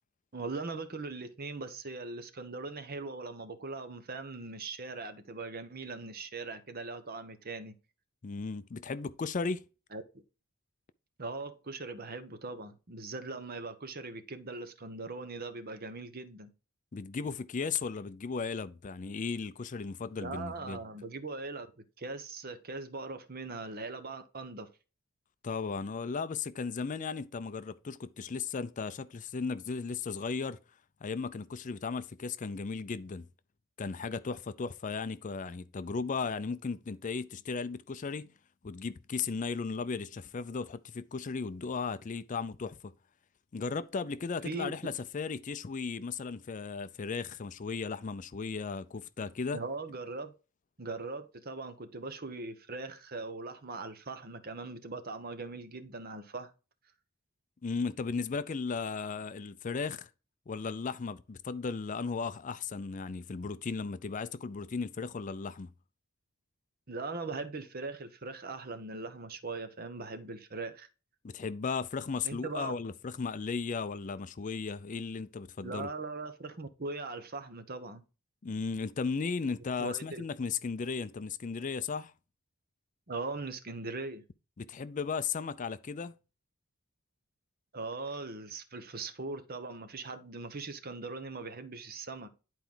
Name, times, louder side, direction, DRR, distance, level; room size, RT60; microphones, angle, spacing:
voice 1, 0.3-7.7 9.9-10.0 11.2-16.5 20.2-21.7 22.0-24.7 44.4-44.9 49.5-50.3 50.8-56.5 66.9-70.9 72.2-72.8 75.6-78.0 79.8-80.3 83.1-84.2 87.7-92.3, right 3 dB, 45° right, 1.0 m, -40 dB
voice 2, 8.2-9.6 16.9-20.8 25.4-30.6 31.0-33.3 33.8-38.3 38.6-42.9 43.5-49.6 57.6-60.1 60.5-65.7 71.2-75.9 78.4-82.1 84.6-86.1, left 5 dB, 40° left, 0.4 m, -36 dB
10.5 x 4.5 x 3.8 m
head